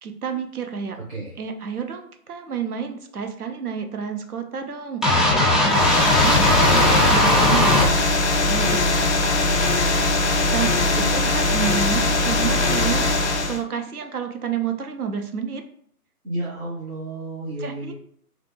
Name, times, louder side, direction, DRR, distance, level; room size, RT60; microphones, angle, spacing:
voice 1, 0.0-1.0 1.4-8.2 8.5-9.4 10.5-15.6 17.6-17.9, right 6 dB, 70° right, 5 dB, 0.8 m, -30 dB
sound 1, 5.0-7.9, left 1 dB, ahead, 0.3 m, -18 dB
sound 2, 5.7-13.6, left 2 dB, 50° left, 0.5 m, -21 dB
voice 2, 6.7-7.0 10.8-11.1 16.2-17.9, right 1 dB, 45° right, -7 dB, 1.3 m, -31 dB
3.2 x 2.5 x 3.1 m, 0.62 s
figure-of-eight pair, 150°, 47 cm